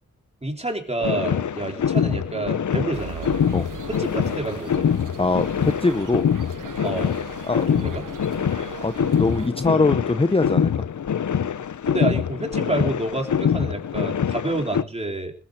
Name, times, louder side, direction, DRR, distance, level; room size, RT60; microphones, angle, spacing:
voice 1, 0.4-3.4 3.9-5.0 6.8-7.2 7.7-8.0 11.8-15.3, right 2 dB, 20° right, 2 dB, 3.9 m, -28 dB
sound 1, 1.0-14.8, left 8 dB, 65° left, 0.8 m, -25 dB
sound 2, 2.9-9.5, right 8 dB, 75° right, 1.1 m, -39 dB
voice 2, 5.2-6.2 7.4-7.7 8.8-10.8, left 3 dB, 20° left, 11 dB, 0.7 m, -22 dB
20.5 x 8.8 x 6.5 m, 0.39 s
wide cardioid pair, 110°, 32 cm